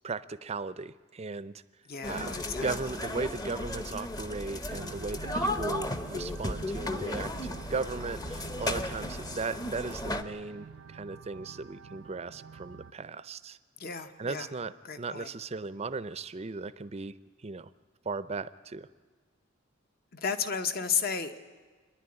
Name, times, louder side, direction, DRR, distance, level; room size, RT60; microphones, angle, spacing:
voice 1, 0.0-1.5 2.1-13.6 14.2-14.7 15.0-17.1 17.4-17.7 18.0-18.9, right 4 dB, 30° right, 15 dB, 0.5 m, -37 dB
voice 2, 1.9-2.7 13.8-14.5 14.8-15.3 20.1-21.4, left 6 dB, 50° left, 9 dB, 1.0 m, -33 dB
sound 1, 2.0-10.2, left 1 dB, 20° left, 0.8 m, -35 dB
sound 2, 4.7-12.9, right 5 dB, 80° right, 0.5 m, -47 dB
25.5 x 10.5 x 9.7 m, 1.4 s
head